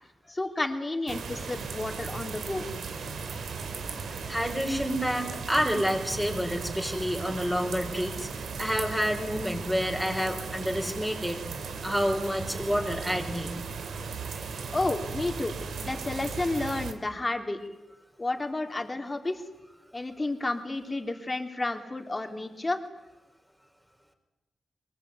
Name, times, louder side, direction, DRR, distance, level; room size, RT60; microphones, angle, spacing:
voice 1, 0.3-2.7 14.7-17.6 18.2-19.4 19.9-22.8, left 2 dB, 20° left, 5 dB, 3.2 m, -31 dB
sound 1, 1.1-16.9, right 5 dB, 90° right, 3.1 m, -37 dB
voice 2, 4.3-11.4 11.8-13.5, equal, 5° right, 3 dB, 4.9 m, -29 dB
24.0 x 23.0 x 9.6 m, 1.0 s
wide cardioid pair, 110°, 0 cm